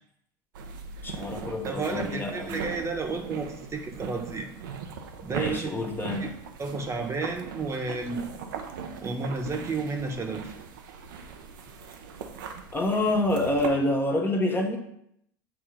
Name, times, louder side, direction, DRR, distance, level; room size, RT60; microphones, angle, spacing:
sound 1, 0.5-13.7, right 6 dB, 80° right, 0.7 m, -39 dB
voice 1, 1.0-2.6 5.3-6.3 12.7-14.8, left 1 dB, 20° left, 2 dB, 1.0 m, -27 dB
voice 2, 1.6-4.5 5.2-5.9 6.2-6.3 6.6-8.2 9.0-10.5, right 4 dB, 25° right, 3 dB, 1.0 m, -32 dB
7.2 x 2.8 x 5.0 m, 0.73 s
hypercardioid pair, 85°, 11 cm